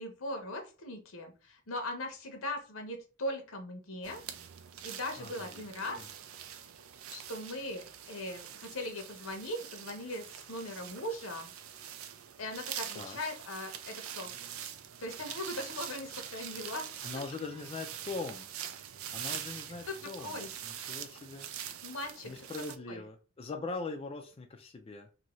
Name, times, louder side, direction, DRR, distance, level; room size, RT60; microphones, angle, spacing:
voice 1, 0.0-4.2 4.8-6.0 7.1-11.5 12.4-14.3 15.0-16.9 17.1-17.2 19.9-20.5 21.8-22.4 22.9-23.0, left 1 dB, 75° left, 4 dB, 0.9 m, -39 dB
sound 1, 4.0-22.8, right 9 dB, 85° right, 0.4 m, -44 dB
voice 2, 5.2-5.6 5.9-6.1 12.9-13.2 17.0-18.5 19.1-21.5 22.2-25.1, left 3 dB, 30° left, 3 dB, 0.4 m, -41 dB
2.7 x 2.6 x 3.0 m, 0.34 s
head